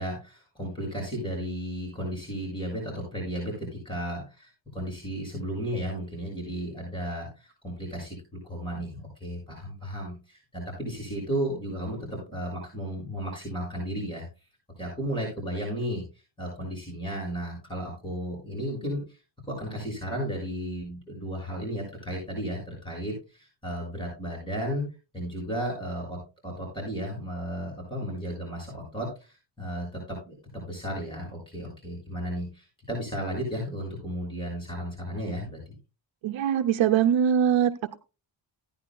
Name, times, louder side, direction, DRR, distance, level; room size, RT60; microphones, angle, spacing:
voice 1, 0.0-14.2 14.8-16.0 16.4-19.2 19.5-24.8 25.1-35.8, equal, 10° left, -2 dB, 6.5 m, -34 dB
voice 2, 36.2-38.0, right 9 dB, 80° right, 6 dB, 0.7 m, -23 dB
15.5 x 10.0 x 2.2 m, 0.30 s
wide cardioid pair, 130°, 46 cm